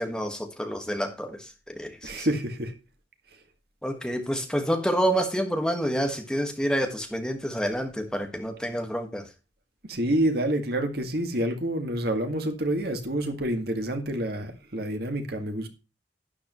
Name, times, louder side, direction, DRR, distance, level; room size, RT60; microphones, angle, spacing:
voice 1, 0.0-2.3 3.8-9.3, equal, 5° left, 1.5 m, -28 dB
voice 2, 2.0-2.7 9.8-15.7, right 1 dB, 60° right, 1.9 m, -28 dB
12.0 x 10.0 x 3.1 m
head